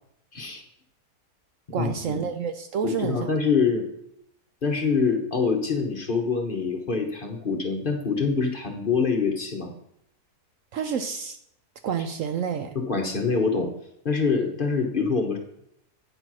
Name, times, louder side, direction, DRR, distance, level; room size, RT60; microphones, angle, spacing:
voice 1, 0.3-0.6 1.8-2.2 2.8-3.8 4.6-9.7 12.7-13.7 14.0-15.4, left 5 dB, 40° left, 3 dB, 1.0 m, -25 dB
voice 2, 1.7-3.3 10.7-11.4 11.8-12.8, right 7 dB, 70° right, 8 dB, 0.8 m, -29 dB
9.0 x 4.3 x 6.1 m, 0.75 s
omnidirectional pair, 1.7 m